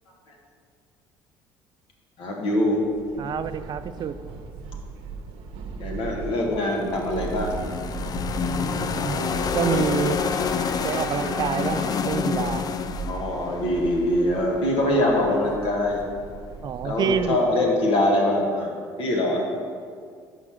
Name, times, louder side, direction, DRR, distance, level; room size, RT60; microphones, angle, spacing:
voice 1, 2.2-2.8 5.8-7.6 13.1-16.0 16.8-18.7 19.0-19.6, left 1 dB, 65° left, -1 dB, 1.7 m, -23 dB
Train / Subway metro underground, 2.8-17.6, right 4 dB, 70° right, 0.8 m, -37 dB
voice 2, 3.2-4.2 8.4-9.2 9.5-10.2 10.8-12.7 16.6-17.4, right 7 dB, 45° right, 11 dB, 0.4 m, -27 dB
sound 1, 6.7-14.7, left 7 dB, 40° left, 0.4 m, -28 dB
6.0 x 5.6 x 6.2 m, 2.1 s
supercardioid pair, 80°, 10 cm